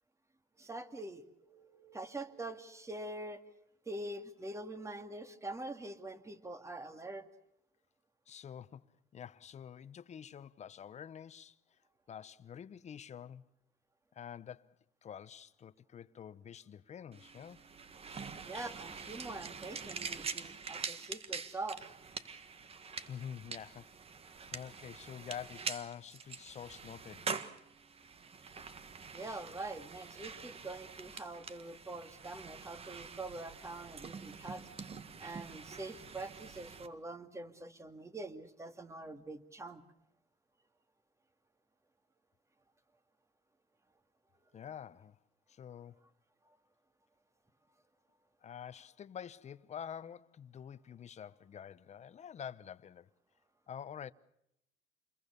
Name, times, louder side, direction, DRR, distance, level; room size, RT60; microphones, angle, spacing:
voice 1, 0.6-3.4 3.9-7.2 18.5-21.9 29.1-34.7 35.2-39.8, right 2 dB, 15° right, 2.3 m, -44 dB
voice 2, 8.3-8.9 9.1-11.6 12.1-13.4 14.1-14.8 15.0-17.6 23.0-24.0 24.5-27.3 44.5-45.2 45.5-46.0 48.4-53.1 53.7-54.1, left 8 dB, 40° left, 1.0 m, -47 dB
sound 1, 17.1-36.9, right 5 dB, 35° right, 1.7 m, -45 dB
28.0 x 22.0 x 6.9 m
cardioid pair, 110°, 17 cm